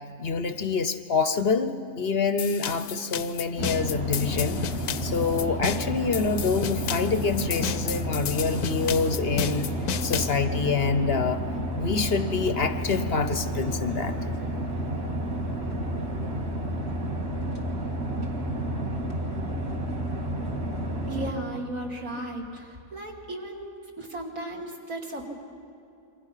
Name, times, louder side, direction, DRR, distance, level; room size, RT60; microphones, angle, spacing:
voice 1, 0.2-4.6 5.0-9.7 10.0-11.4 11.7-14.3, left 5 dB, 45° left, 10 dB, 0.9 m, -26 dB
sound 1, 2.4-10.4, left 9 dB, 75° left, 1.2 m, -33 dB
sound 2, 3.6-21.3, right 1 dB, 40° right, 2.2 m, -31 dB
voice 2, 21.1-25.2, right 1 dB, 60° right, 0 dB, 3.1 m, -35 dB
27.5 x 23.5 x 5.7 m, 2.6 s
omnidirectional pair, 1.7 m